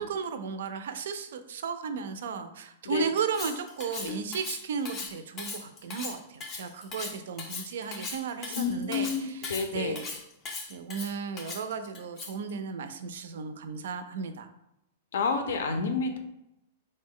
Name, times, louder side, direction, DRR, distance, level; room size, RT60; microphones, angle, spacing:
voice 1, 0.0-10.1 10.7-14.5, right 6 dB, 65° right, 9 dB, 0.4 m, -35 dB
Cutlery silverware, 3.2-12.5, left 4 dB, 20° left, 0.4 m, -39 dB
voice 2, 8.5-10.0 15.1-16.2, left 5 dB, 75° left, 6 dB, 0.5 m, -29 dB
3.6 x 2.1 x 3.6 m, 0.84 s
supercardioid pair, 180°, 0 cm